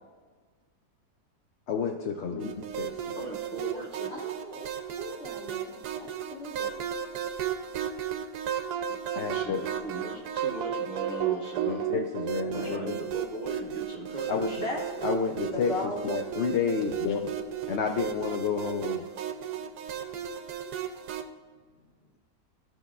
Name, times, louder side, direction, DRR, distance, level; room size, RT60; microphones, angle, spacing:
voice 1, 1.7-2.9 9.2-9.6 11.7-13.0 14.3-14.6 15.0-15.7 16.0-17.3 17.7-19.0, left 6 dB, 70° left, 3 dB, 0.6 m, -30 dB
sound 1, 2.4-21.2, right 9 dB, 80° right, 1.1 m, -34 dB
voice 2, 3.1-4.2 8.9-11.9 12.5-14.8, right 2 dB, 35° right, -3 dB, 0.8 m, -39 dB
voice 3, 4.1-6.7 14.5-15.0 15.5-16.2, left 1 dB, 55° left, -3 dB, 2.0 m, -38 dB
13.5 x 6.1 x 2.4 m, 1.5 s
omnidirectional pair, 1.7 m